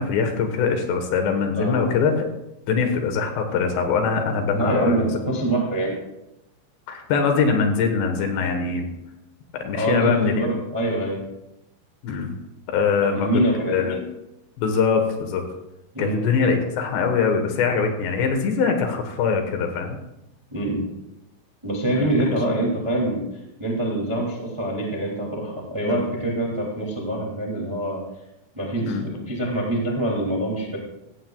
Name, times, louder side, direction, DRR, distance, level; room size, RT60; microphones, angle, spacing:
voice 1, 0.0-2.1 2.7-5.1 6.9-8.9 9.5-10.5 12.0-12.3 12.7-13.4 13.7-14.0 14.6-15.4 16.0-20.0 21.9-22.4 25.8-26.0 28.8-29.0, left 5 dB, 70° left, 5 dB, 3.3 m, -23 dB
voice 2, 1.5-1.9 4.5-5.9 9.7-11.2 13.0-13.9 15.9-16.2 20.5-20.8 21.6-23.2 23.6-28.0 28.5-30.8, right 1 dB, 35° right, -2 dB, 0.4 m, -25 dB
16.0 x 15.0 x 2.4 m, 0.90 s
omnidirectional pair, 5.5 m